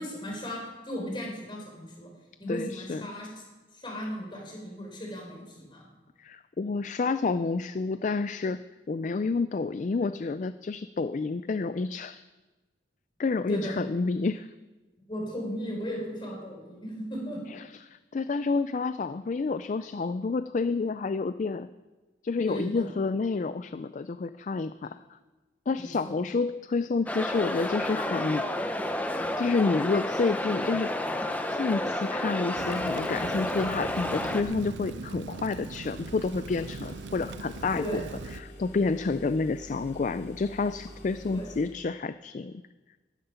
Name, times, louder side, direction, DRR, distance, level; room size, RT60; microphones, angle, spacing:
voice 1, 0.0-2.1 2.4-3.3 3.7-5.9 13.5-13.8 15.1-17.4 22.5-22.9 25.8-25.9 37.7-38.1 41.3-41.5, equal, 25° left, 0 dB, 3.9 m, -36 dB
voice 2, 2.5-3.1 6.2-8.6 8.9-12.2 13.2-14.5 17.5-21.7 22.2-25.2 25.7-28.5 29.4-30.9 31.5-38.0 38.3-42.5, left 4 dB, 40° left, 12 dB, 0.3 m, -29 dB
sound 1, 27.1-34.4, left 1 dB, 10° left, 0.8 m, -31 dB
Rain, 32.6-38.4, right 4 dB, 75° right, 0.5 m, -41 dB
sound 2, 35.8-41.8, equal, 65° left, 2.9 m, -47 dB
12.5 x 12.5 x 5.7 m, 1.2 s
head